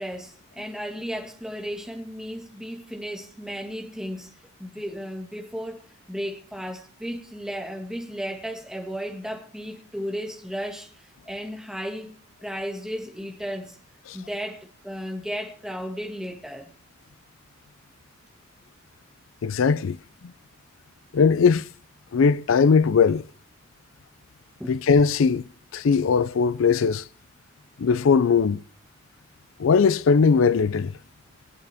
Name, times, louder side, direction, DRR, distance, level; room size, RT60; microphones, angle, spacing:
voice 1, 0.0-13.8 14.1-16.7 24.6-24.8, equal, 5° right, 1.8 m, -34 dB
voice 2, 19.4-20.0 21.1-21.7 22.1-23.2 24.7-25.4 25.7-27.0 27.8-28.6 29.6-30.9, left 5 dB, 90° left, 0.4 m, -19 dB
21.5 x 8.3 x 3.5 m
head